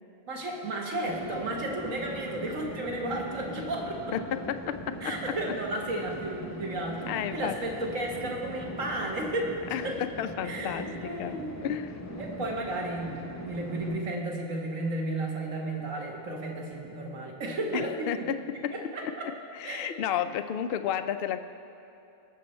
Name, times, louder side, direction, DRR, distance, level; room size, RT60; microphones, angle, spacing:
voice 1, 0.3-4.0 5.0-9.6 9.8-10.0 10.4-11.6 12.2-13.2 13.4-18.3 18.7-19.3 19.6-20.0, right 1 dB, 60° right, 0 dB, 1.7 m, -33 dB
sound 1, 1.1-14.0, equal, 20° left, 0.4 m, -41 dB
voice 2, 4.1-5.0 7.1-7.6 9.7-12.1 17.7-18.4 18.6-18.7 19.5-21.4, left 9 dB, 85° left, 9 dB, 0.5 m, -32 dB
19.0 x 6.6 x 4.3 m, 2.8 s
omnidirectional pair, 1.5 m